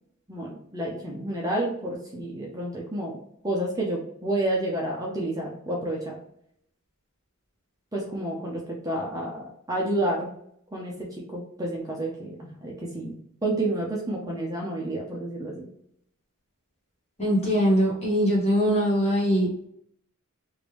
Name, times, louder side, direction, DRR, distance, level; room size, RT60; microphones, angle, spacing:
voice 1, 0.3-3.2 3.4-6.2 7.9-10.3 10.7-13.1 13.4-15.6, right 1 dB, 15° right, -2 dB, 0.5 m, -30 dB
voice 2, 17.2-19.7, equal, 30° left, -5 dB, 1.5 m, -22 dB
3.2 x 2.6 x 3.2 m, 0.70 s
head